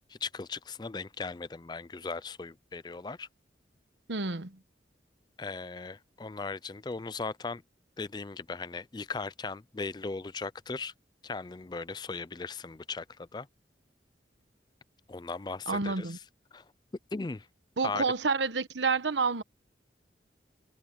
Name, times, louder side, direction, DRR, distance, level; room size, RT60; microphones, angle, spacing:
voice 1, 0.1-3.3 5.4-7.6 8.0-10.9 11.2-13.5 15.1-16.2 16.5-16.7 17.1-17.5 17.8-18.1, left 4 dB, 25° left, 0.4 m, -38 dB
voice 2, 4.1-4.6 15.7-16.2 17.8-19.4, right 4 dB, 85° right, 1.1 m, -29 dB
head